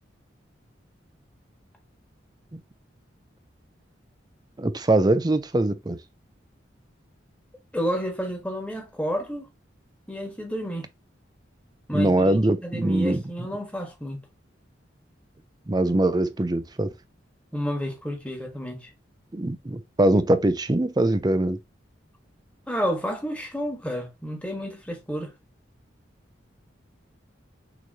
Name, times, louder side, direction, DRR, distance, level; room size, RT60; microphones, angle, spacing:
voice 1, 4.6-6.0 11.9-13.2 15.7-16.9 19.3-21.6, right 1 dB, 20° right, 0.5 m, -22 dB
voice 2, 7.7-9.5 10.1-10.9 11.9-14.2 17.5-18.9 22.7-25.3, equal, 5° left, 1.4 m, -30 dB
6.3 x 3.1 x 2.7 m
head